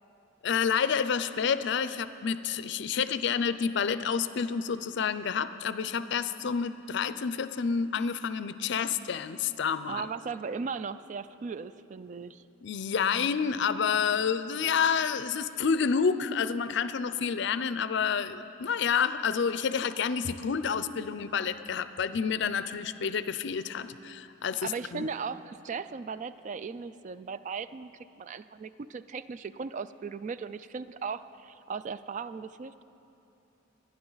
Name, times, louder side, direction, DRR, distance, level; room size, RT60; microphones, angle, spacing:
voice 1, 0.4-10.1 12.6-25.1, left 6 dB, 65° left, 13 dB, 0.4 m, -29 dB
voice 2, 9.9-12.4 24.6-27.9 28.2-32.8, right 5 dB, 40° right, 14 dB, 0.3 m, -37 dB
22.0 x 10.5 x 3.9 m, 2.8 s
head